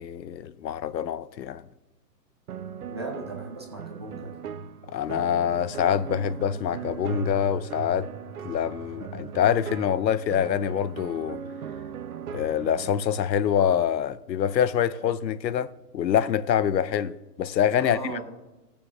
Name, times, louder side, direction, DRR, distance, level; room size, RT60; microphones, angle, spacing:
voice 1, 0.0-1.6 4.9-8.1 8.4-11.4 12.3-18.2, left 9 dB, 90° left, 0.8 m, -25 dB
sound 1, 2.5-12.9, right 7 dB, 60° right, 0.7 m, -38 dB
voice 2, 2.8-4.4 17.8-18.2, right 2 dB, 15° right, 0.6 m, -37 dB
17.0 x 6.9 x 3.2 m
hypercardioid pair, 170°, 50 cm